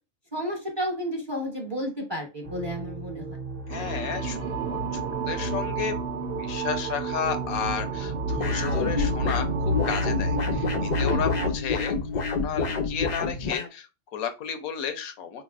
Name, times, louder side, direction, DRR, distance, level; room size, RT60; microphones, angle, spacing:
voice 1, 0.3-3.3 11.0-11.2, equal, 25° right, 0 dB, 0.8 m, -31 dB
sound 1, 2.4-10.8, right 2 dB, 45° right, 1.0 m, -37 dB
voice 2, 3.7-6.0 6.4-15.4, left 8 dB, 80° left, 8 dB, 1.1 m, -33 dB
sound 2, 3.7-11.5, right 2 dB, 65° right, 0.7 m, -30 dB
sound 3, 8.4-13.7, left 4 dB, 65° left, 0.4 m, -29 dB
4.0 x 3.1 x 2.3 m, 0.28 s
omnidirectional pair, 1.5 m